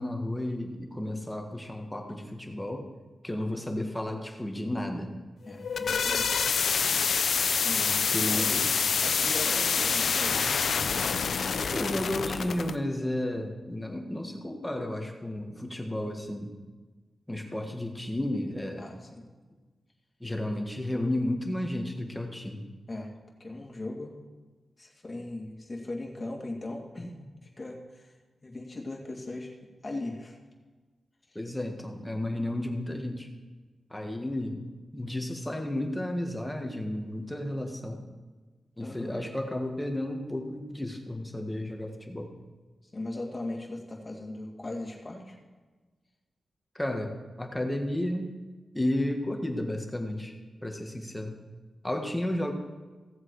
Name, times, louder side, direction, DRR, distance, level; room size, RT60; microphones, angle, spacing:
voice 1, 0.0-2.9 3.2-5.1 8.1-8.7 11.7-16.5 17.3-18.9 20.2-22.6 31.3-33.3 33.9-34.6 34.9-38.0 38.8-42.3 46.7-48.4 48.7-50.4 50.6-51.4 51.8-52.5, left 1 dB, 10° left, 3 dB, 1.7 m, -32 dB
sound 1, 5.4-12.7, left 6 dB, 75° left, 0.6 m, -27 dB
voice 2, 5.4-6.5 7.6-8.6 9.0-10.4 18.8-19.2 22.9-23.1 23.4-24.2 24.8-28.1 28.4-29.5 29.8-30.4 31.3-31.4 38.8-39.2 42.8-45.4, left 2 dB, 30° left, 0 dB, 2.5 m, -39 dB
16.5 x 7.4 x 4.8 m, 1.3 s
cardioid pair, 65°, 0 cm